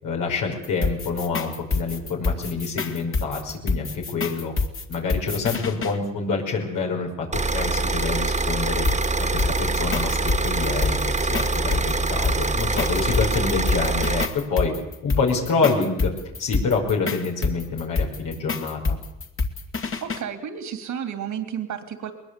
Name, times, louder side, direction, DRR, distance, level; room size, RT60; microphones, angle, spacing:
voice 1, 0.0-4.5 4.9-7.3 7.5-8.9 9.2-14.7 15.0-16.1 16.4-19.0, left 4 dB, 85° left, 1 dB, 5.4 m, -27 dB
sound 1, 0.6-6.0 8.9-20.2, left 3 dB, 45° left, 2.4 m, -27 dB
sound 2, 7.3-14.3, right 2 dB, 20° right, 1.7 m, -24 dB
voice 2, 20.0-22.1, right 8 dB, 75° right, 8 dB, 2.9 m, -32 dB
21.0 x 20.5 x 8.4 m, 0.87 s
cardioid pair, 80°, 31 cm